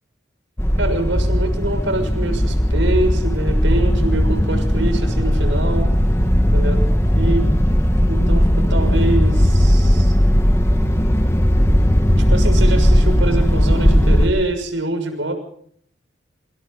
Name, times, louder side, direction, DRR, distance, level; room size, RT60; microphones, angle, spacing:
sound 1, 0.6-14.3, equal, 15° left, 1.8 m, -16 dB
voice 1, 0.8-5.9 6.5-6.9 7.1-7.5 8.1-10.2 12.2-15.3, right 2 dB, 90° right, 7 dB, 6.5 m, -25 dB
sound 2, 3.7-13.8 14.6-14.7, equal, 15° right, 2.2 m, -33 dB
27.0 x 26.5 x 4.1 m, 0.63 s
head